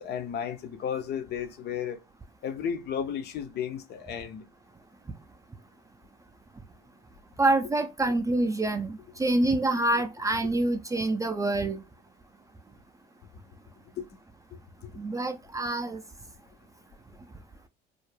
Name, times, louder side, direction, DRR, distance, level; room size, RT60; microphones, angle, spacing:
voice 1, 0.0-2.0 2.4-4.5 14.0-14.1, left 8 dB, 50° left, 0.5 m, -33 dB
voice 2, 7.4-11.8 15.0-16.0, right 2 dB, 15° right, 0.4 m, -26 dB
2.4 x 2.0 x 3.1 m
hypercardioid pair, 65°, 21 cm